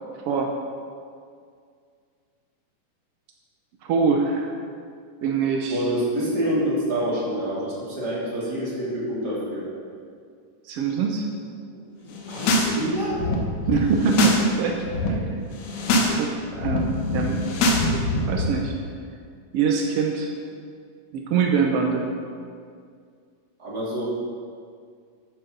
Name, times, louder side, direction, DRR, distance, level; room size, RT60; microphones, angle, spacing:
voice 1, 3.8-4.5 5.2-5.9 10.6-11.2 13.7-15.6 15.9-17.5 18.2-18.7 19.5-20.3 21.1-22.1, right 5 dB, 75° right, 1 dB, 1.4 m, -24 dB
voice 2, 5.7-9.7 12.0-13.2 23.6-24.0, right 1 dB, 30° right, -7 dB, 3.5 m, -27 dB
sound 1, 12.2-12.7 13.0-14.4 14.7-15.1 15.6-16.1 16.4-18.5, left 2 dB, 65° left, 2.5 m, -24 dB
13.5 x 10.5 x 4.0 m, 2.1 s
omnidirectional pair, 3.8 m